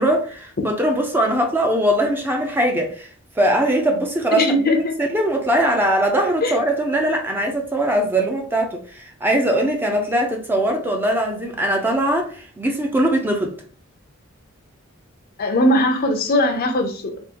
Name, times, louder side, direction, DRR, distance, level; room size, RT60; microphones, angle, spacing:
voice 1, 0.0-3.1 3.4-4.5 4.7-13.5, right 1 dB, 10° right, 0.5 m, -21 dB
voice 2, 4.3-5.0 6.4-6.6 15.4-17.2, left 1 dB, 45° left, 0.5 m, -19 dB
3.5 x 2.4 x 2.8 m
head